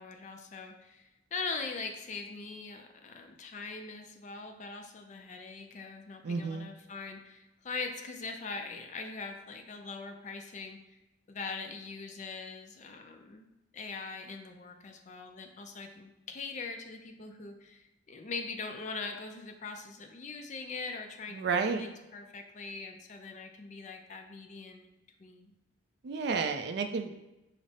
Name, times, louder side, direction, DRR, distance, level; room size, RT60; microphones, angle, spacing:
voice 1, 0.0-11.0 11.3-25.5, left 4 dB, 40° left, 5 dB, 0.4 m, -42 dB
voice 2, 6.2-6.7 21.3-21.9 26.0-27.2, right 4 dB, 55° right, 7 dB, 0.3 m, -31 dB
5.0 x 2.0 x 4.1 m, 0.99 s
head